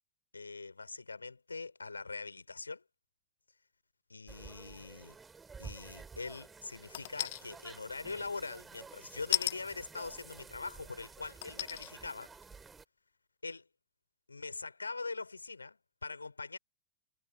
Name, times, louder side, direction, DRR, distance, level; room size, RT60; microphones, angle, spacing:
voice 1, 0.3-2.8 4.1-5.2 5.6-12.3 13.4-13.6 14.3-16.6, left 3 dB, 80° left, 4.8 m, -43 dB
sound 1, 4.3-12.8, right 5 dB, 15° right, 5.5 m, -52 dB
sound 2, 6.9-7.4 9.3-9.6 10.5-10.6 11.4-11.9 12.4-12.5, left 16 dB, 55° left, 0.6 m, -33 dB
figure-of-eight pair, 90°, 0 cm